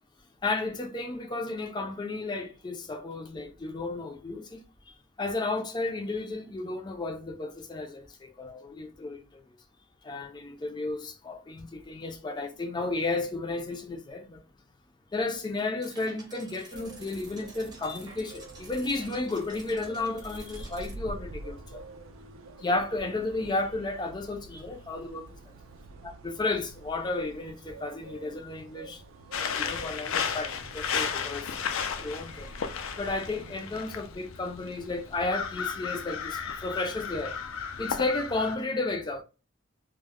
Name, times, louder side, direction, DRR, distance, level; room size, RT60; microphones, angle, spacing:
voice 1, 0.4-4.6 5.2-9.2 10.0-14.4 15.1-21.8 22.6-25.3 26.2-29.0 29.6-31.5 32.0-32.5 33.0-39.2, left 2 dB, 20° left, 0.4 m, -33 dB
sound 1, 15.8-20.9, right 3 dB, 20° right, 0.6 m, -51 dB
sound 2, 16.7-33.8, right 2 dB, 85° right, 0.4 m, -47 dB
sound 3, 29.3-38.6, left 7 dB, 90° left, 0.4 m, -34 dB
2.1 x 2.0 x 3.4 m
head